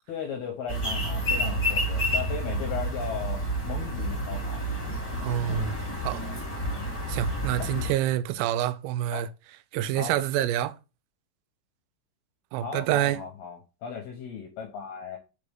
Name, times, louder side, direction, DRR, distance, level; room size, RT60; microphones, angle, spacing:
voice 1, 0.1-4.6 5.5-5.7 6.2-6.4 7.5-7.7 9.1-9.2 10.0-10.1 12.6-15.2, left 7 dB, 75° left, 2.4 m, -37 dB
sound 1, 0.7-7.9, equal, 15° left, 1.2 m, -29 dB
voice 2, 5.2-5.7 6.0-6.2 7.1-9.3 9.7-10.8 12.5-13.2, right 12 dB, 90° right, 3.2 m, -27 dB
6.7 x 4.3 x 3.6 m
omnidirectional pair, 5.8 m